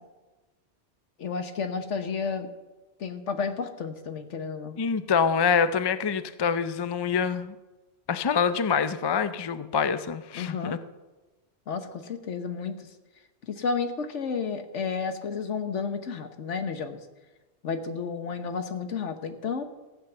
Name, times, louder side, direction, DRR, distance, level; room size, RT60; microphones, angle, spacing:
voice 1, 1.2-2.5 3.0-4.8 10.3-10.7 11.7-12.7 13.4-17.0 17.6-19.6, left 5 dB, 80° left, 8 dB, 1.4 m, -31 dB
voice 2, 4.8-7.5 8.1-10.8, left 6 dB, 35° left, 12 dB, 0.4 m, -25 dB
15.0 x 8.4 x 6.7 m, 1.1 s
omnidirectional pair, 1.2 m